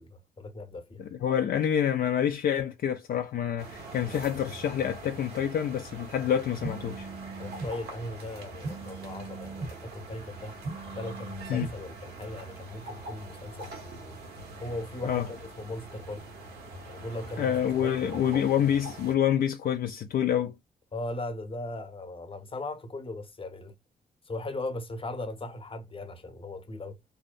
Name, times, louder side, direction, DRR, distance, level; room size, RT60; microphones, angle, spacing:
voice 1, 0.0-1.0 7.4-10.6 10.9-14.2 14.6-16.3 16.9-18.6 20.9-23.7 24.2-27.0, left 2 dB, 35° left, 0.9 m, -38 dB
voice 2, 1.0-7.1 11.5-11.7 15.0-15.3 17.4-20.5, left 9 dB, 65° left, 0.4 m, -27 dB
sound 1, 3.6-19.2, right 2 dB, 80° right, 1.1 m, -44 dB
sound 2, 6.6-7.7 8.6-9.7 10.6-11.7, right 3 dB, 35° right, 0.7 m, -39 dB
2.7 x 2.1 x 2.4 m
supercardioid pair, 60°, 16 cm